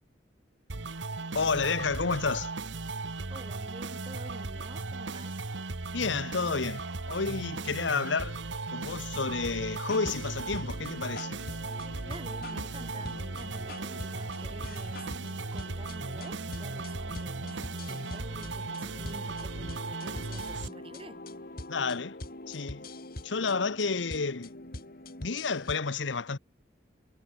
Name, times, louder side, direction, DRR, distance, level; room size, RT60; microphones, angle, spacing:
sound 1, 0.7-20.7, right 3 dB, 80° right, 1.4 m, -37 dB
voice 1, 1.3-2.5 5.9-8.4 8.7-11.4 21.7-22.2 22.5-22.8 23.2-24.5 25.2-26.4, left 4 dB, 90° left, 1.0 m, -30 dB
voice 2, 3.3-5.4 12.0-15.1 15.5-21.2, right 2 dB, 30° right, 1.7 m, -48 dB
sound 2, 9.9-25.8, left 1 dB, 55° left, 2.8 m, -44 dB
head